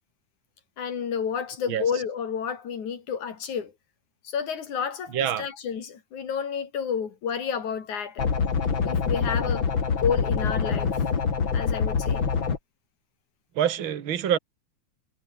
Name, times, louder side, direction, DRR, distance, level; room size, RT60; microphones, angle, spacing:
voice 1, 0.8-3.7 4.2-8.2 8.8-10.9 11.5-12.3, left 7 dB, 90° left, 4.4 m, -30 dB
voice 2, 5.1-5.5 13.6-14.4, right 10 dB, 45° right, 2.4 m, -25 dB
sound 1, 8.2-12.6, left 6 dB, 45° left, 3.1 m, -25 dB
omnidirectional pair, 3.3 m